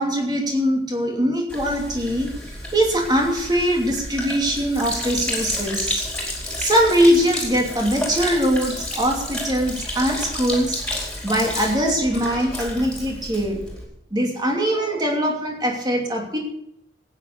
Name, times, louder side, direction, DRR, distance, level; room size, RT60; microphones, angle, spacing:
voice 1, 0.0-2.3 2.7-6.0 6.6-10.8 11.2-13.6 14.1-16.4, equal, 25° right, 0 dB, 2.9 m, -22 dB
Sink (filling or washing), 1.5-13.8, left 1 dB, 5° left, 4.2 m, -31 dB
15.0 x 9.6 x 6.8 m, 0.75 s
head